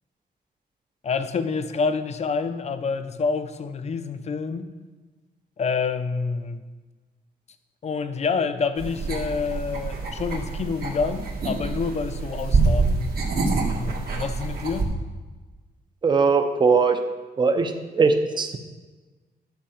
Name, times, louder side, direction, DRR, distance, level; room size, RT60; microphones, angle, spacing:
voice 1, 1.0-4.7 5.6-6.6 7.8-14.9, left 5 dB, 40° left, 10 dB, 0.6 m, -28 dB
sound 1, 8.8-14.9, right 3 dB, 65° right, 1.8 m, -26 dB
voice 2, 16.0-17.0 17.4-18.6, right 4 dB, 25° right, 6 dB, 0.7 m, -20 dB
11.5 x 4.7 x 7.2 m, 1.3 s
wide cardioid pair, 165°, 17 cm